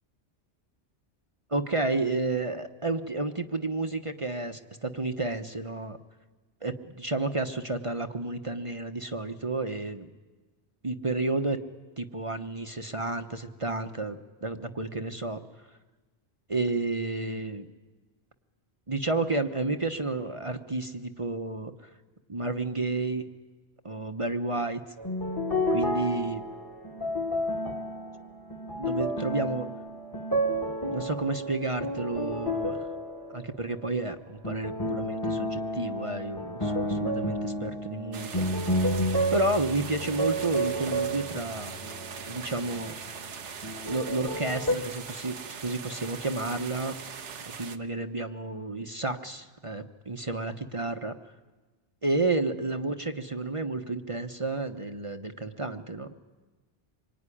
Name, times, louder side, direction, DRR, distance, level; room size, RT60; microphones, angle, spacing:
voice 1, 1.5-6.0 6.6-10.1 10.8-11.6 12.0-15.4 16.5-17.7 18.9-21.7 22.3-23.2 23.8-24.8 25.7-26.4 28.8-29.7 30.9-32.8 33.3-38.4 39.3-41.8 42.3-42.9 43.8-47.0 47.6-51.2 52.0-56.1, right 2 dB, 30° right, 6 dB, 1.0 m, -31 dB
sound 1, 25.0-33.9 34.4-43.4 43.6-44.7, equal, 20° left, 1.7 m, -31 dB
sound 2, 38.1-47.8, right 6 dB, 90° right, 1.4 m, -41 dB
25.5 x 23.0 x 10.0 m, 1.3 s
omnidirectional pair, 1.2 m